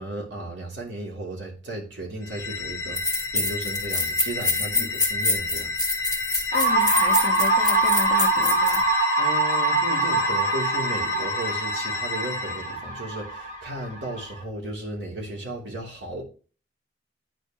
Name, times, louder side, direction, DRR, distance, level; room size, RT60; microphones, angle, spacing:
voice 1, 0.0-5.7 6.4-6.5 9.2-16.2, right 1 dB, 80° right, 3.0 m, -35 dB
sound 1, 2.2-12.7, left 3 dB, 20° left, 0.9 m, -31 dB
sound 2, 2.4-2.5 2.9-8.8, left 2 dB, 5° right, 1.6 m, -26 dB
voice 2, 4.6-4.9 6.5-8.8, left 2 dB, 50° left, 0.9 m, -33 dB
sound 3, 6.5-14.4, right 2 dB, 45° right, 1.6 m, -24 dB
10.0 x 4.6 x 3.0 m
head